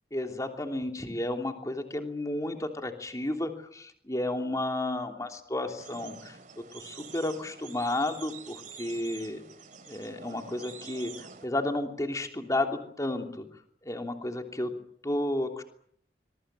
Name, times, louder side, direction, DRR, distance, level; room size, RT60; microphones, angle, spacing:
voice 1, 0.1-6.4 6.7-9.4 9.9-13.4 13.8-14.7 15.0-15.6, left 1 dB, 20° left, 4 dB, 3.1 m, -32 dB
sound 1, 5.8-11.5, right 6 dB, 50° right, 2.5 m, -47 dB
25.5 x 22.5 x 7.6 m, 0.66 s
head